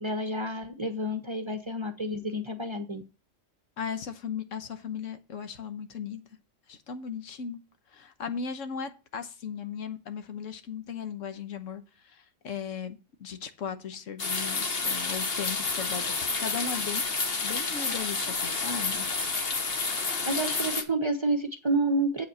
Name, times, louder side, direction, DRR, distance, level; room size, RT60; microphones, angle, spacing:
voice 1, 0.0-3.0 20.3-22.3, right 1 dB, 30° right, 7 dB, 0.7 m, -29 dB
voice 2, 3.8-6.2 6.7-7.6 7.9-17.0 17.4-19.1, left 6 dB, 85° left, 9 dB, 1.4 m, -37 dB
sound 1, 14.2-20.8, left 4 dB, 50° left, 1.4 m, -30 dB
8.1 x 5.2 x 6.9 m, 0.31 s
omnidirectional pair, 1.3 m